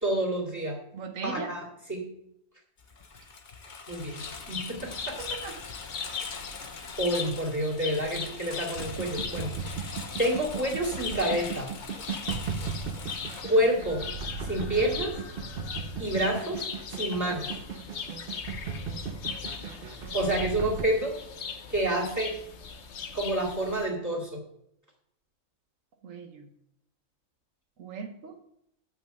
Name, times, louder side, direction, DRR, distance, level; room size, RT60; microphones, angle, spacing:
voice 1, 0.0-0.8 1.2-1.6 1.9-2.0 3.9-4.2 4.5-5.2 7.0-9.9 10.2-11.7 13.4-14.0 14.4-15.1 16.0-16.6 16.9-17.5 20.1-21.1 21.7-22.3 23.1-24.4, right 1 dB, 15° right, -1 dB, 2.3 m, -28 dB
voice 2, 0.9-1.5 4.1-4.2 5.2-5.6 26.0-26.5 27.8-28.4, right 5 dB, 75° right, 5 dB, 1.3 m, -39 dB
Engine, 2.8-13.4, left 4 dB, 40° left, 0.9 m, -43 dB
sound 1, 4.2-23.9, left 6 dB, 60° left, 1.1 m, -40 dB
sound 2, 8.8-20.8, right 5 dB, 50° right, 0.9 m, -37 dB
7.3 x 5.9 x 6.5 m, 0.77 s
omnidirectional pair, 1.4 m